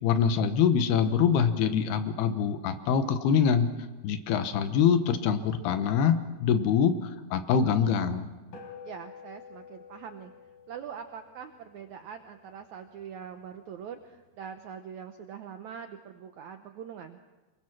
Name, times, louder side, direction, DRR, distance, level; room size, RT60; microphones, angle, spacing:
voice 1, 0.0-3.7 4.0-8.3, left 7 dB, 85° left, 9 dB, 3.2 m, -24 dB
sound 1, 8.5-13.2, left 6 dB, 65° left, 5.3 m, -50 dB
voice 2, 8.8-10.3 10.7-17.2, right 7 dB, 80° right, 7 dB, 1.7 m, -43 dB
25.5 x 22.5 x 6.1 m, 1.2 s
omnidirectional pair, 4.5 m